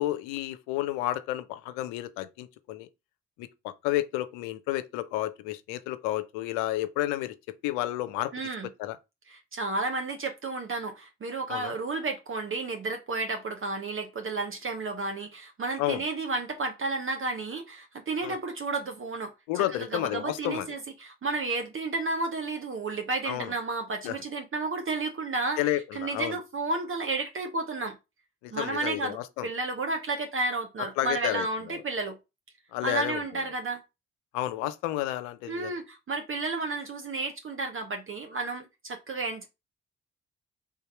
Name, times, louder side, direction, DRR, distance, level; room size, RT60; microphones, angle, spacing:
voice 1, 0.0-2.9 3.4-7.4 7.6-8.3 8.8-9.0 11.5-11.7 15.8-16.0 18.2-18.4 19.5-20.7 23.2-23.5 24.0-24.2 25.6-26.4 28.4-29.5 31.0-31.8 32.7-33.2 34.3-35.7, left 15 dB, 85° left, 0.5 m, -31 dB
voice 2, 8.3-8.7 9.3-19.3 19.7-28.0 28.5-29.2 29.4-32.2 32.8-33.8 35.5-39.5, right 3 dB, 40° right, 0.9 m, -32 dB
3.6 x 2.8 x 4.6 m
hypercardioid pair, 45°, 31 cm